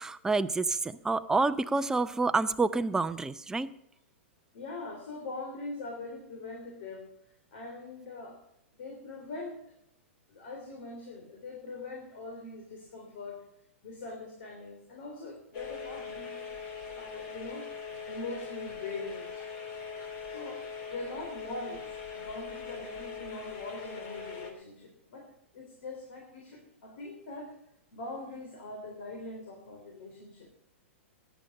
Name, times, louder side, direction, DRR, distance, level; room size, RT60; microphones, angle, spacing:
voice 1, 0.0-3.7, right 3 dB, 10° right, 11 dB, 0.6 m, -28 dB
voice 2, 4.5-7.1 7.5-8.4 8.8-9.6 10.3-13.4 13.8-16.5 17.0-19.5 20.2-27.5 27.9-30.5, left 2 dB, 60° left, 2 dB, 3.2 m, -42 dB
sound 1, 15.5-24.5, left 6 dB, 40° left, 2.8 m, -41 dB
14.0 x 10.0 x 5.3 m, 0.78 s
hypercardioid pair, 115°, 7 cm